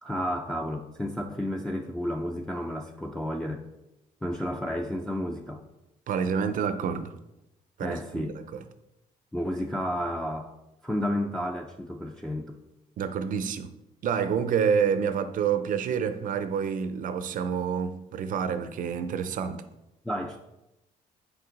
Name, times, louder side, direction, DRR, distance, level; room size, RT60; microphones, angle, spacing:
voice 1, 0.0-3.6 4.2-5.6 7.8-8.4 9.3-10.5 10.8-12.5 20.0-20.4, equal, 5° left, 0.5 m, -31 dB
voice 2, 6.1-7.1 7.8-8.6 13.0-13.7 14.0-19.6, right 7 dB, 65° right, 0.6 m, -28 dB
7.0 x 4.3 x 3.9 m
cardioid pair, 85°, 15 cm